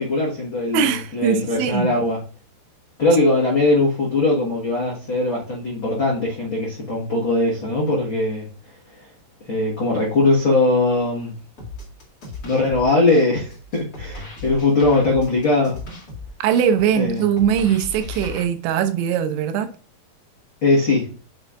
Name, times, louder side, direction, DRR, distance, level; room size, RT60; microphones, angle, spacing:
voice 1, 0.0-2.2 3.0-8.5 9.0-9.1 9.4-11.3 12.4-15.8 16.9-17.3 20.6-21.1, left 2 dB, 75° left, 1.1 m, -20 dB
voice 2, 0.7-2.0 16.4-19.7, right 8 dB, 80° right, 2.9 m, -21 dB
sound 1, 11.6-18.4, left 2 dB, 40° left, 1.2 m, -36 dB
6.6 x 5.9 x 2.5 m
omnidirectional pair, 5.2 m